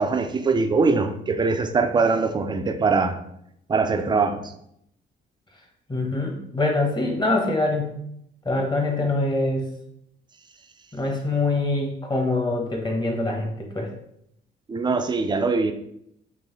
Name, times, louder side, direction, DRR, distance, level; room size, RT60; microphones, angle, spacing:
voice 1, 0.0-3.2 3.7-4.5 14.7-15.7, right 4 dB, 25° right, 8 dB, 0.4 m, -22 dB
voice 2, 5.9-8.0 8.4-9.7 10.9-13.9, left 2 dB, 20° left, 1 dB, 1.0 m, -24 dB
3.7 x 3.1 x 3.1 m, 0.74 s
cardioid pair, 90°, 20 cm